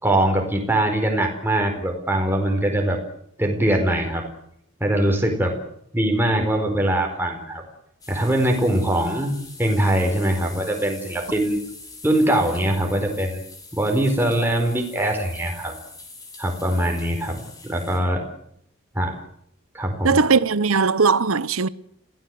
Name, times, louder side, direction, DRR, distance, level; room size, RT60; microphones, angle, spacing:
voice 1, 0.0-3.0 3.4-4.3 4.8-5.6 5.9-7.6 8.1-11.6 12.0-13.4 13.7-15.7 16.4-18.3 18.9-19.2 19.7-20.2, right 1 dB, 10° right, 4.6 m, -22 dB
sound 1, 8.0-18.0, left 3 dB, 15° left, 5.7 m, -43 dB
voice 2, 20.0-21.7, right 5 dB, 80° right, 0.9 m, -19 dB
27.5 x 17.5 x 7.9 m
head